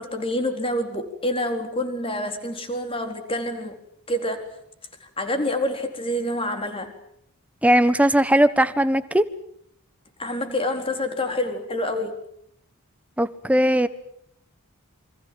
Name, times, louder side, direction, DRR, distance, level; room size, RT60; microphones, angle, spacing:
voice 1, 0.0-3.8 4.1-4.5 5.0-6.9 10.2-12.1, left 1 dB, 25° left, 4.0 m, -27 dB
voice 2, 7.6-9.3 13.2-13.9, right 1 dB, 5° right, 1.2 m, -19 dB
28.5 x 25.5 x 7.6 m
head